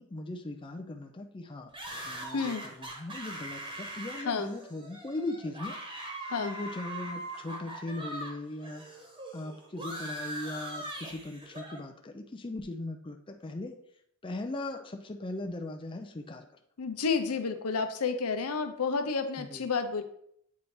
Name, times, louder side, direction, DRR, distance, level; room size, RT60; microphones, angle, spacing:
voice 1, 0.0-1.7 2.0-5.8 6.4-8.8 9.3-13.8 14.2-16.5 19.4-19.6, left 2 dB, 20° left, 4 dB, 0.4 m, -39 dB
sound 1, 1.7-8.3 8.6-11.8, right 1 dB, 20° right, 1.1 m, -41 dB
voice 2, 2.3-2.6 4.3-4.5 6.3-6.6 16.8-20.0, left 5 dB, 85° left, 8 dB, 0.7 m, -30 dB
8.3 x 3.2 x 4.3 m, 0.70 s
head